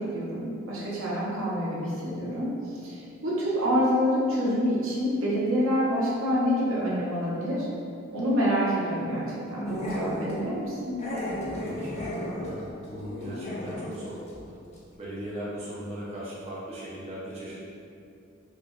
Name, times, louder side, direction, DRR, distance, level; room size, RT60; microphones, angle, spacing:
voice 1, 0.0-2.5 2.7-7.7 8.1-11.0, equal, 75° right, -6 dB, 0.8 m, -27 dB
Growling, 9.7-10.4 11.0-14.0 14.3-14.4 14.7-14.8, left 1 dB, 30° left, 0.5 m, -34 dB
voice 2, 11.6-14.5 14.9-17.7, right 1 dB, 30° right, -8 dB, 0.4 m, -39 dB
4.7 x 2.2 x 2.3 m, 2.5 s
head